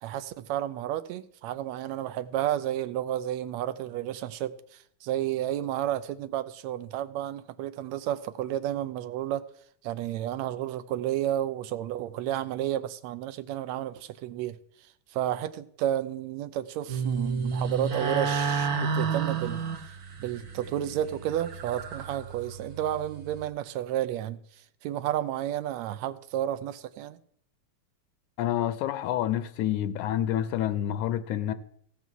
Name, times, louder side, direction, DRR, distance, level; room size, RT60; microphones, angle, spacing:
voice 1, 0.0-9.5 9.8-14.6 15.1-19.6 20.2-24.4 24.8-27.2, right 12 dB, 75° right, 1.8 m, -31 dB
sound 1, 16.9-23.4, right 5 dB, 50° right, 1.2 m, -31 dB
voice 2, 28.4-31.5, left 11 dB, 85° left, 2.1 m, -28 dB
16.0 x 5.6 x 7.4 m
omnidirectional pair, 3.4 m